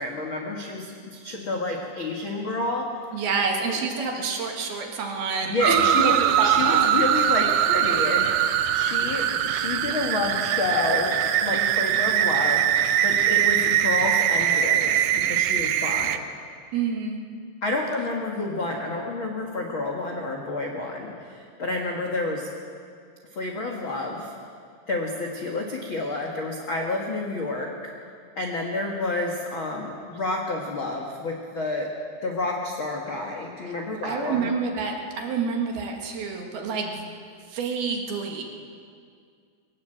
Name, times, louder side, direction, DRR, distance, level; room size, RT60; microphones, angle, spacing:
voice 1, 0.0-2.9 3.7-3.8 5.4-16.2 17.6-22.5 23.3-24.3 24.9-27.9 28.4-31.9 32.2-34.5, left 2 dB, 55° left, 0 dB, 1.4 m, -29 dB
voice 2, 3.1-6.1 6.4-6.9 16.7-17.2 34.0-37.1 37.5-38.4, right 5 dB, 65° right, 2 dB, 3.5 m, -28 dB
sound 1, 5.6-16.2, right 10 dB, 85° right, 2.1 m, -22 dB
21.5 x 18.0 x 7.9 m, 2.2 s
omnidirectional pair, 5.1 m